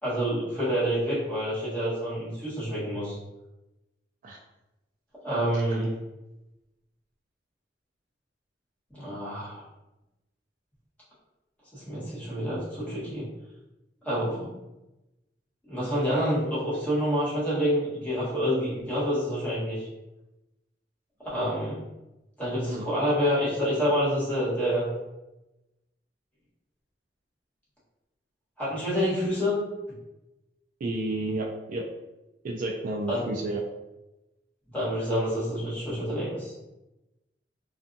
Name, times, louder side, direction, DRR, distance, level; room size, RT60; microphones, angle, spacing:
voice 1, 0.0-3.2 5.2-5.9 8.9-9.6 11.7-13.3 14.0-14.5 15.7-19.9 21.3-21.8 22.4-24.9 28.6-29.6 33.1-33.2 34.7-36.5, equal, 10° left, -9 dB, 1.1 m, -27 dB
voice 2, 22.7-23.1 30.8-31.8 32.4-33.6, right 2 dB, 50° right, 0 dB, 0.3 m, -32 dB
2.5 x 2.4 x 2.5 m, 0.99 s
head